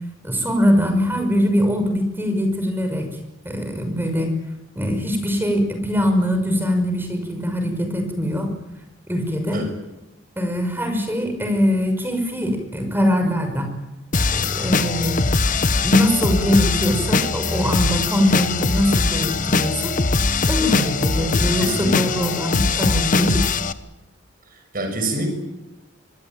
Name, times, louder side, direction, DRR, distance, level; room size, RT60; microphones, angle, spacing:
voice 1, 0.2-3.1 3.4-4.3 4.8-8.5 9.1-9.6 10.4-13.7 14.3-15.3 15.8-20.0 20.5-23.5, equal, 10° right, 6 dB, 5.9 m, -22 dB
voice 2, 9.3-9.7 14.4-14.5 21.6-22.1 24.7-25.3, right 1 dB, 50° right, 5 dB, 6.9 m, -26 dB
sound 1, 14.1-23.7, left 3 dB, 45° left, 1.1 m, -21 dB
25.5 x 21.0 x 9.2 m, 1.0 s
head